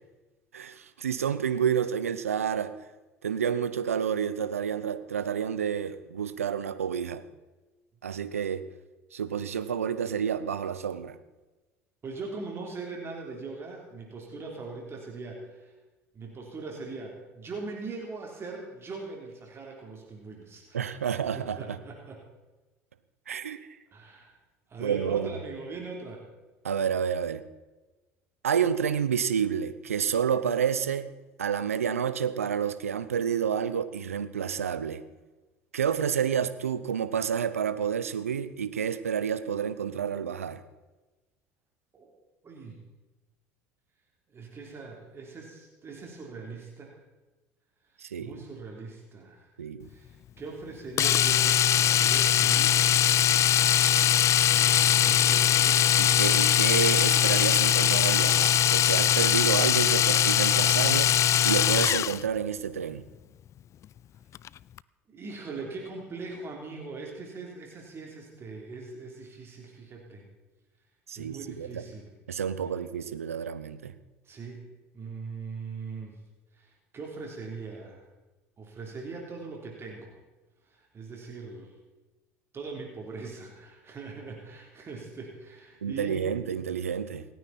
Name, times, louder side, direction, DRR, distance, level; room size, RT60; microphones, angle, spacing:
voice 1, 0.5-2.7 3.2-7.2 8.0-8.7 9.1-11.2 20.7-21.8 23.3-23.7 24.8-25.3 26.6-27.4 28.4-31.1 31.4-35.0 35.7-40.6 48.0-48.4 49.6-49.9 56.0-63.0 71.1-71.9 72.3-73.9 85.8-87.3, right 8 dB, 90° right, 13 dB, 0.8 m, -29 dB
voice 2, 12.0-15.7 16.1-22.2 23.9-24.3 24.7-26.2 41.9-42.1 42.4-42.8 44.3-47.0 48.2-49.5 49.9-52.8 54.5-55.9 65.1-70.2 71.2-72.1 74.3-74.6 74.9-76.2 76.5-78.0 78.6-80.1 80.7-81.7 82.5-86.3, right 4 dB, 35° right, 0 dB, 3.6 m, -41 dB
Domestic sounds home sounds, 51.0-62.2 64.3-64.5 64.8-64.9, left 10 dB, 40° left, 0.4 m, -21 dB
27.5 x 9.5 x 4.3 m, 1.2 s
hypercardioid pair, 70°, 7 cm